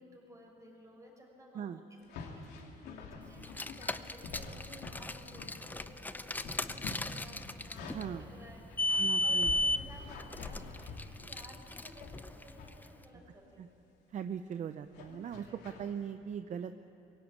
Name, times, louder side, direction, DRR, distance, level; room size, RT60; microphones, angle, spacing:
voice 1, 0.0-13.9 15.4-15.6, equal, 20° right, -1 dB, 6.1 m, -56 dB
sound 1, 2.0-5.9 6.2-8.2 8.7-11.5 12.0-12.8 13.2-13.5 14.9-15.9, left 4 dB, 85° left, 2.7 m, -47 dB
Car, 3.4-12.9, left 1 dB, 10° left, 0.6 m, -35 dB
voice 2, 7.9-8.3 9.0-9.6 13.6-13.7 14.1-16.7, right 8 dB, 45° right, 9 dB, 0.7 m, -40 dB
22.0 x 17.0 x 8.8 m, 2.8 s
cardioid pair, 110°, 17 cm